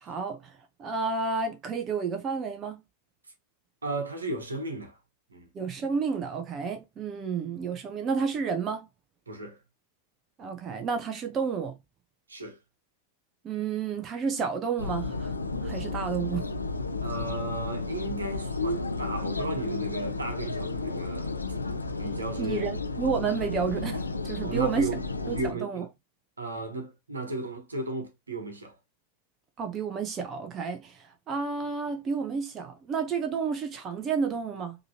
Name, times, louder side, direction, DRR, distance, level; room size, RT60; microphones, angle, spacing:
voice 1, 0.0-2.8 5.5-8.9 10.4-11.8 13.4-15.3 15.6-16.5 22.4-24.9 25.3-25.8 29.6-34.8, right 5 dB, 25° right, 0.9 m, -31 dB
voice 2, 3.8-5.0 5.3-5.5 9.3-9.6 12.3-12.6 17.0-21.4 22.0-22.7 24.4-25.0 25.3-25.8 26.4-28.7, right 2 dB, 75° right, 1.3 m, -35 dB
sound 1, 14.8-25.5, left 3 dB, 80° left, 0.6 m, -32 dB
5.2 x 3.1 x 2.7 m
figure-of-eight pair, 90°, 0 cm